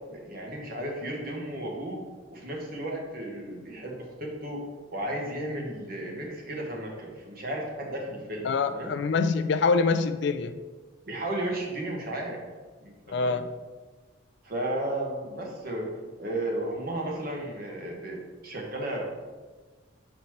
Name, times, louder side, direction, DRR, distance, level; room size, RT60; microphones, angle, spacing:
voice 1, 0.1-2.0 2.3-4.6 4.9-8.9 11.1-12.4 12.8-12.9 13.2-13.4 14.4-15.9 16.2-19.2, right 1 dB, 50° right, 0 dB, 1.2 m, -34 dB
voice 2, 8.4-10.6 13.1-13.5, left 4 dB, 60° left, 11 dB, 0.3 m, -25 dB
4.6 x 4.2 x 5.6 m, 1.3 s
head